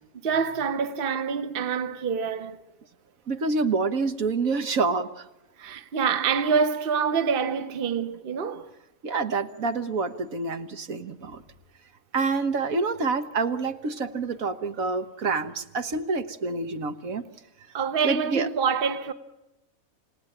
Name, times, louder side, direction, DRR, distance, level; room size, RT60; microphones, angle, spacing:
voice 1, 0.2-2.6 5.6-8.7 17.7-19.1, right 6 dB, 40° right, 1.2 m, -26 dB
voice 2, 3.3-5.3 9.0-11.4 12.1-17.2 18.0-18.5, right 4 dB, 70° right, 1.7 m, -27 dB
29.0 x 17.5 x 8.9 m
omnidirectional pair, 1.6 m